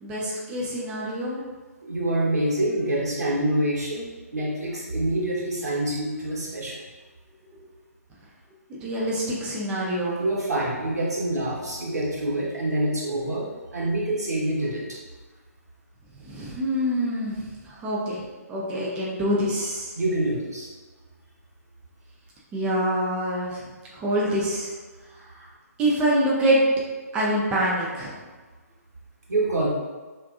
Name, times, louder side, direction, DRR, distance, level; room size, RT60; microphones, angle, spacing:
voice 1, 0.0-1.4 8.8-10.2 16.2-18.2 18.5-19.9 22.5-23.6 23.9-24.7 25.4-25.5 25.8-26.6 27.1-28.2, right 1 dB, 15° right, -6 dB, 0.4 m, -25 dB
voice 2, 1.8-6.8 10.2-14.8 19.9-20.7 29.3-29.7, right 1 dB, 85° right, -5 dB, 1.0 m, -26 dB
2.5 x 2.4 x 2.3 m, 1.3 s
figure-of-eight pair, 140°, 9 cm